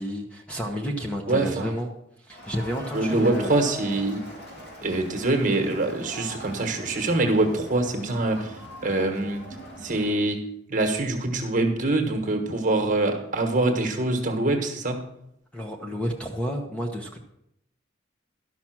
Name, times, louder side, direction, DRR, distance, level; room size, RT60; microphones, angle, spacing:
voice 1, 0.0-1.9 2.2-3.6 15.5-17.2, equal, 5° left, 2 dB, 0.8 m, -31 dB
voice 2, 1.3-1.7 2.9-4.2 4.8-9.4 9.8-10.4 10.7-15.1, right 2 dB, 40° right, 3 dB, 1.4 m, -24 dB
Crowd, 2.3-10.2, equal, 55° left, 2.7 m, -41 dB
12.0 x 5.9 x 6.0 m, 0.78 s
head